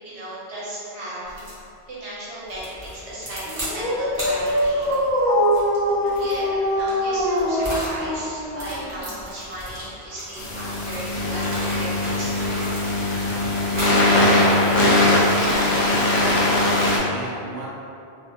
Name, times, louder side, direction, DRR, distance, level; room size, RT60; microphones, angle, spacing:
voice 1, 0.0-1.5 1.9-4.9 6.0-12.6, right 1 dB, 85° right, -8 dB, 1.0 m, -36 dB
sound 1, 1.3-1.6 2.5-3.8 4.1-8.0 8.4-12.1 12.5-13.2 13.7-14.0 14.6-16.7, equal, 30° right, 0.8 m, -35 dB
Dog, 3.5-9.1, equal, 25° left, 0.4 m, -23 dB
sound 2, 10.4-17.0, left 1 dB, 85° left, 0.9 m, -20 dB
voice 2, 15.1-16.5 17.1-17.7, right 2 dB, 65° right, -7 dB, 0.8 m, -36 dB
2.4 x 2.4 x 2.7 m, 2.6 s
omnidirectional pair, 1.1 m